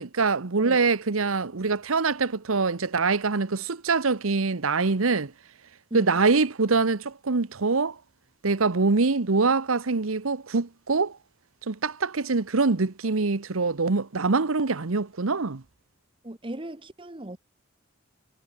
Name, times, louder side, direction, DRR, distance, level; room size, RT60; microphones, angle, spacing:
voice 1, 0.0-5.3 5.9-8.0 8.4-11.2 11.7-15.6, right 4 dB, 90° right, 1.0 m, -24 dB
voice 2, 16.2-17.4, right 1 dB, 25° right, 1.3 m, -37 dB
head